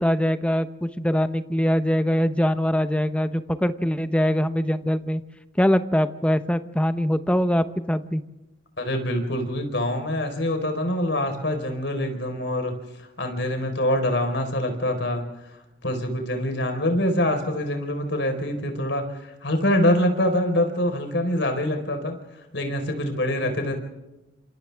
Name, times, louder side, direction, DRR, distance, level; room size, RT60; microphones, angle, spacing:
voice 1, 0.0-5.2 5.6-8.2, equal, 5° left, 10 dB, 0.9 m, -23 dB
voice 2, 8.8-12.7 13.2-15.3 15.8-22.2 22.5-23.7, left 1 dB, 70° left, 5 dB, 4.5 m, -25 dB
29.0 x 27.0 x 3.6 m, 1.0 s
head